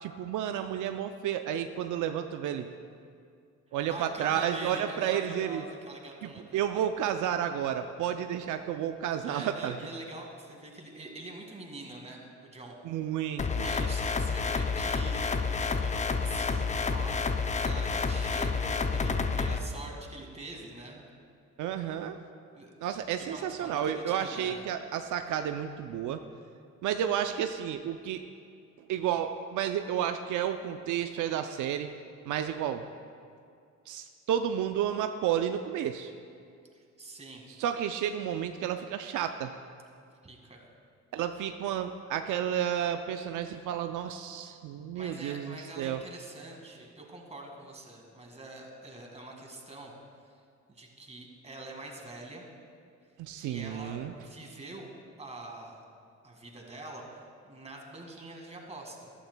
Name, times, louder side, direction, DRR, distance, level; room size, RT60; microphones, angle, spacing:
voice 1, 0.0-2.7 3.7-5.6 6.2-9.8 12.8-13.7 21.6-22.2 22.8-26.2 26.8-28.2 28.9-31.9 32.3-32.8 33.9-36.1 37.6-39.5 41.1-46.0 53.2-54.1, right 9 dB, 80° right, 7 dB, 0.5 m, -31 dB
voice 2, 3.7-6.6 9.2-13.0 13.6-21.1 22.5-22.7 23.3-24.6 36.7-37.4 40.2-40.6 44.5-44.6 44.9-49.9 50.7-52.5 53.4-55.8 56.2-59.1, right 2 dB, 20° right, 1 dB, 1.8 m, -44 dB
sound 1, 13.4-19.6, left 4 dB, 25° left, 0.5 m, -29 dB
14.0 x 11.5 x 2.2 m, 2.3 s
cardioid pair, 90°, 30 cm